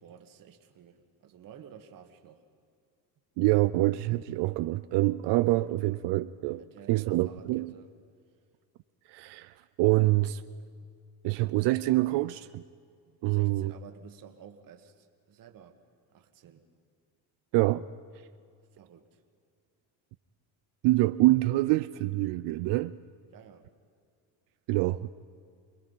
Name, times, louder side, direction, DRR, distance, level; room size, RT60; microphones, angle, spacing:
voice 1, 0.0-2.5 6.6-7.9 13.1-15.8 16.1-16.7 18.7-19.2 23.3-23.7, right 8 dB, 50° right, 1.7 m, -52 dB
voice 2, 3.4-6.6 6.9-7.7 9.1-10.4 11.2-12.6 13.2-13.7 17.5-17.9 20.8-23.0 24.7-25.1, right 18 dB, 70° right, 0.6 m, -26 dB
26.5 x 20.5 x 5.6 m
cardioid pair, 120°, 44 cm